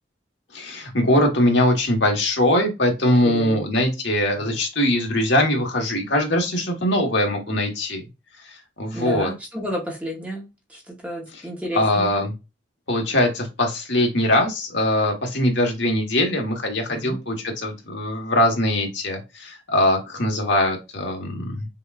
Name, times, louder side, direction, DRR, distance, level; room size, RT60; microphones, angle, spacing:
voice 1, 0.5-8.0 8.8-9.3 11.7-12.3 12.9-21.7, left 1 dB, 65° left, 1.2 m, -21 dB
voice 2, 3.2-3.6 4.3-4.5 8.9-12.1 16.9-17.2, right 1 dB, 5° right, 0.8 m, -31 dB
5.8 x 2.3 x 2.4 m
head